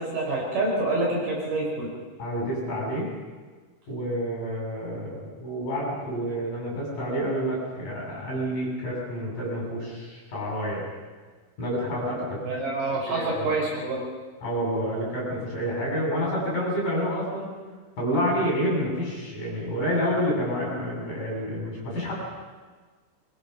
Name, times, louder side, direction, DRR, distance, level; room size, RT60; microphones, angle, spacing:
voice 1, 0.0-1.9 12.4-14.1, right 2 dB, 50° right, -3 dB, 6.7 m, -27 dB
voice 2, 2.2-3.1 3.9-10.9 11.6-12.4 13.0-13.5 14.4-17.5 18.0-22.1, equal, 40° left, -3 dB, 9.5 m, -28 dB
25.0 x 23.5 x 6.0 m, 1.4 s
omnidirectional pair, 5.8 m